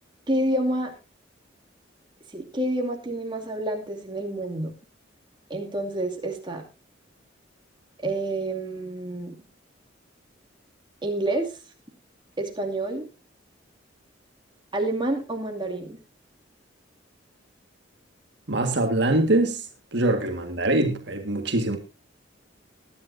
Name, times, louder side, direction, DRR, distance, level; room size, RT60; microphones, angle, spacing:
voice 1, 0.3-0.9 2.3-4.7 5.5-6.6 8.0-9.3 11.0-11.5 12.4-13.0 14.7-16.0, right 1 dB, 25° right, 2.5 m, -28 dB
voice 2, 18.5-19.6 19.9-21.8, right 2 dB, 60° right, 1.7 m, -23 dB
20.0 x 10.5 x 2.7 m
head